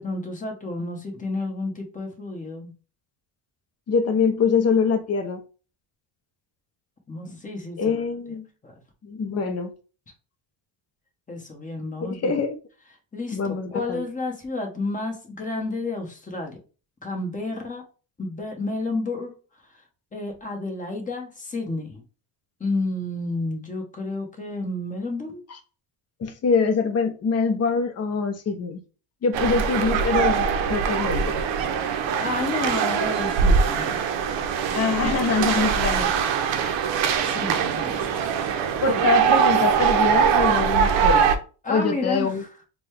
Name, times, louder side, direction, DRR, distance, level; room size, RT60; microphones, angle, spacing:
voice 1, 0.0-2.7 7.1-8.1 8.6-8.7 11.3-12.4 13.1-16.6 17.0-17.8 18.2-19.3 20.1-22.0 22.6-25.4 32.2-34.0 35.9-36.0 37.2-38.3 41.6-42.5, left 2 dB, 15° left, 1.1 m, -31 dB
voice 2, 3.9-5.4 7.8-8.5 9.0-9.7 12.0-12.6 13.3-14.0 26.2-28.8 29.2-31.5 34.7-36.1 38.8-41.3 41.7-42.4, left 5 dB, 30° left, 0.6 m, -24 dB
sound 1, 29.3-41.4, right 7 dB, 60° right, 0.7 m, -22 dB
3.9 x 2.3 x 3.2 m
cardioid pair, 115°, 50 cm